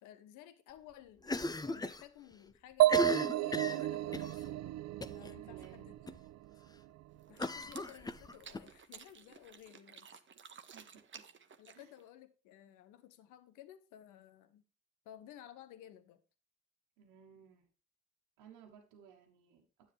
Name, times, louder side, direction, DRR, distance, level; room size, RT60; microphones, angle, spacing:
voice 1, 0.0-4.7 5.1-5.9 7.3-10.6 11.6-14.6 15.0-16.2, left 11 dB, 70° left, 1.0 m, -55 dB
Cough, 1.2-2.0 2.3-2.4 2.8-4.4 5.0-5.3 5.6-5.7 6.1-6.2 7.4-8.6, left 2 dB, 10° left, 0.7 m, -37 dB
sound 1, 2.8-6.5, right 15 dB, 55° right, 0.4 m, -32 dB
voice 2, 5.4-5.9 7.6-7.7 10.7-11.2 11.7-11.9 17.0-17.7 18.4-19.9, right 8 dB, 75° right, 1.3 m, -59 dB
sound 2, 7.2-12.1, right 6 dB, 40° right, 1.1 m, -55 dB
10.0 x 8.0 x 3.4 m
hypercardioid pair, 45°, 32 cm